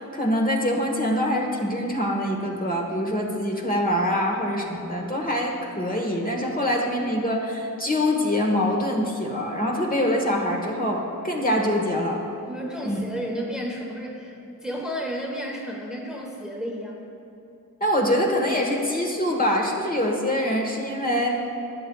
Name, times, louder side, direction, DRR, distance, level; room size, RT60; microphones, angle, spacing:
voice 1, 0.1-12.2 12.8-13.0 17.8-21.4, left 1 dB, 25° left, -1 dB, 1.3 m, -24 dB
voice 2, 12.5-14.3 14.6-17.0, equal, ahead, -1 dB, 1.1 m, -32 dB
12.5 x 8.2 x 2.3 m, 3.0 s
cardioid pair, 40°, 36 cm